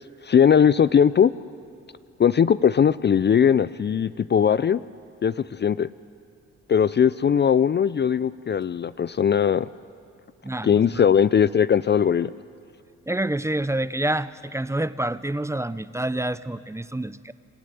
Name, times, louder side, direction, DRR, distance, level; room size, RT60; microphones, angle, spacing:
voice 1, 0.2-1.3 2.2-4.8 5.2-5.9 6.7-9.7 10.6-12.3, left 8 dB, 35° left, 16 dB, 0.5 m, -19 dB
voice 2, 10.4-11.0 13.1-17.3, right 1 dB, 10° right, 15 dB, 0.7 m, -28 dB
27.5 x 14.5 x 9.2 m, 2.5 s
supercardioid pair, 65°, 31 cm